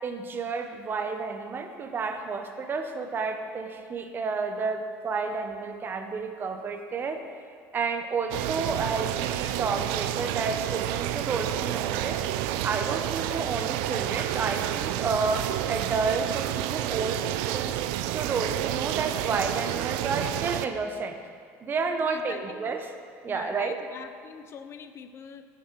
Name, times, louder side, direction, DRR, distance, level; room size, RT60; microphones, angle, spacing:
voice 1, 0.0-7.2 7.7-12.2 12.6-17.7 18.1-21.2 21.6-22.9 23.2-23.8, right 4 dB, 30° right, 6 dB, 0.7 m, -31 dB
sound 1, 8.3-20.7, right 13 dB, 85° right, 0.3 m, -30 dB
voice 2, 22.0-22.7 23.3-25.5, left 7 dB, 40° left, 10 dB, 0.5 m, -43 dB
10.0 x 6.1 x 4.5 m, 2.1 s
cardioid pair, 135°, 7 cm